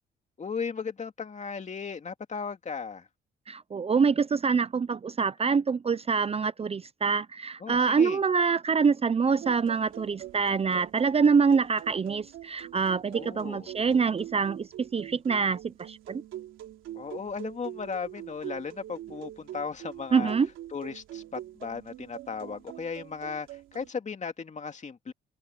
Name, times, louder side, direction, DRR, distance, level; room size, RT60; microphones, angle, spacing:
voice 1, 0.4-3.1 7.6-8.2 13.1-13.7 16.9-20.3 20.7-23.5 23.7-25.1, left 5 dB, 35° left, 2.5 m, -36 dB
voice 2, 3.5-16.2 20.1-20.5, right 5 dB, 30° right, 0.6 m, -25 dB
sound 1, 9.4-23.9, right 13 dB, 85° right, 3.0 m, -44 dB
open air
cardioid pair, 90°, 20 cm